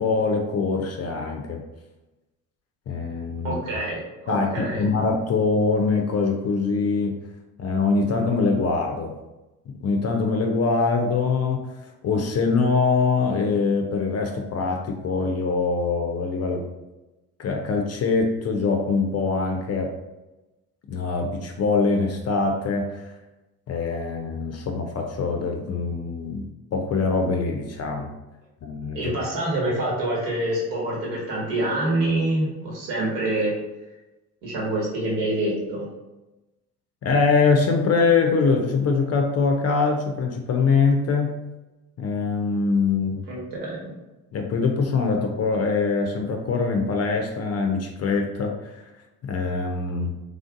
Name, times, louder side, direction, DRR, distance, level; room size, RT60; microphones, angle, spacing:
voice 1, 0.0-1.6 2.9-3.6 4.3-7.1 7.6-9.2 9.8-11.6 12.0-16.6 17.4-19.9 20.9-23.1 23.7-26.4 26.7-28.2 28.6-29.1 37.0-41.4 42.0-43.3 44.3-48.9 49.2-50.1, left 4 dB, 35° left, 3 dB, 0.5 m, -23 dB
voice 2, 3.4-4.0 4.2-4.9 28.9-33.5 34.4-35.8 43.3-43.9, right 1 dB, 65° right, -4 dB, 1.5 m, -26 dB
3.3 x 2.5 x 2.4 m, 1.1 s
hypercardioid pair, 55°, 45 cm